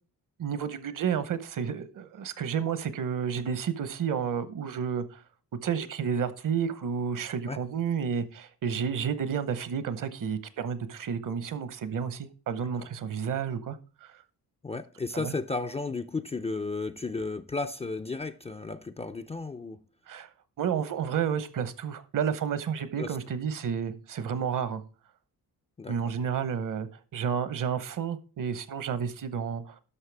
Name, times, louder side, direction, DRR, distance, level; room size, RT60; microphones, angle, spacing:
voice 1, 0.4-5.2 5.6-14.2 15.1-15.3 20.1-20.3 20.6-24.8 25.9-29.8, right 7 dB, 60° right, 0.9 m, -31 dB
voice 2, 14.6-19.8 23.0-23.2 25.8-26.1, left 3 dB, 20° left, 0.4 m, -34 dB
11.0 x 6.6 x 3.4 m
cardioid pair, 140°, 37 cm